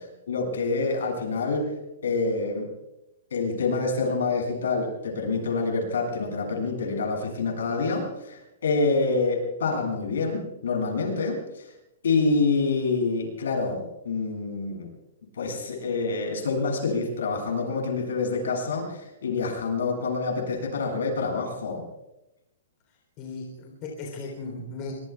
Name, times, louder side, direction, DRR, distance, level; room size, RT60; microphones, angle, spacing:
voice 1, 0.3-1.7 2.0-2.7 3.3-11.7 12.0-14.9 15.4-21.8, left 3 dB, 85° left, 1 dB, 7.8 m, -27 dB
voice 2, 23.2-25.1, left 3 dB, 25° left, 0 dB, 3.8 m, -36 dB
25.5 x 22.5 x 2.5 m, 0.88 s
hypercardioid pair, 175°, 0 cm